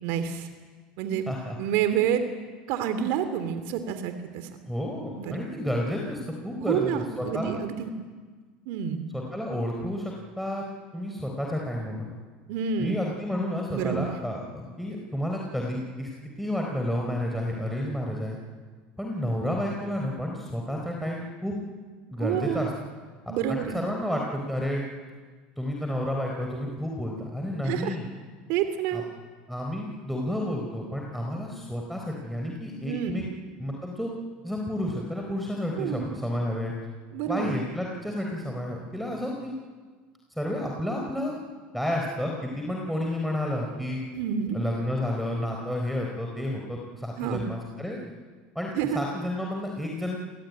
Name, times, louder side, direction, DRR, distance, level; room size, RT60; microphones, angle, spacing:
voice 1, 0.0-0.5 1.0-1.3 1.6-2.2 2.7-4.5 5.2-5.4 6.6-7.9 8.7-9.1 12.5-13.0 13.7-14.2 22.2-22.7 23.3-23.8 27.6-28.0 28.5-29.1 32.8-33.3 35.8-36.1 37.1-37.5 44.1-44.6 47.2-47.5 48.7-49.0, right 8 dB, 70° right, 9 dB, 2.7 m, -28 dB
voice 2, 4.7-7.6 9.1-10.6 10.9-12.2 12.8-18.4 19.0-21.6 22.1-22.7 23.5-24.8 25.6-28.0 28.9-29.0 29.5-33.2 33.6-34.1 34.4-36.7 37.3-39.5 40.4-41.4 41.7-44.0 44.5-48.0 48.5-50.2, left 1 dB, ahead, 0 dB, 4.0 m, -31 dB
27.0 x 19.0 x 9.4 m, 1.5 s
supercardioid pair, 115°, 4 cm